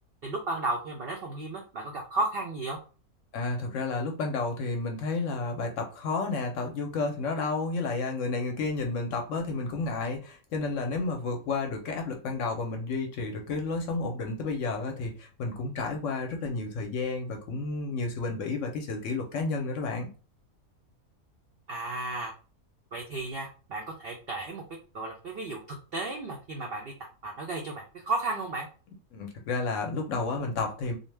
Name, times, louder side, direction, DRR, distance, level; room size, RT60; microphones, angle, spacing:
voice 1, 0.2-2.8 21.7-22.3 22.9-24.6 24.9-25.6 25.9-26.9 27.2-28.7, right 2 dB, 75° right, 1 dB, 0.5 m, -33 dB
voice 2, 3.3-20.1 29.1-31.0, left 3 dB, 65° left, 3 dB, 0.8 m, -31 dB
2.6 x 2.0 x 3.2 m, 0.36 s
omnidirectional pair, 1.5 m